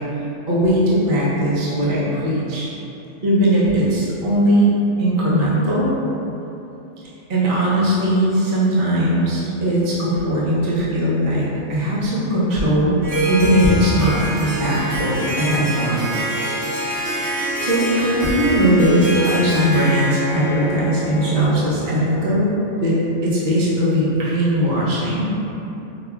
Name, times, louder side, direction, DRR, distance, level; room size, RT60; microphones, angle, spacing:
voice 1, 0.5-2.7 3.2-5.9 7.3-13.0 13.3-16.0 17.6-23.0 23.2-25.3, right 1 dB, 45° right, -8 dB, 0.8 m, -19 dB
Harp, 13.0-21.8, equal, 70° right, 1.1 m, -25 dB
5.1 x 2.4 x 2.3 m, 3.0 s
omnidirectional pair, 1.4 m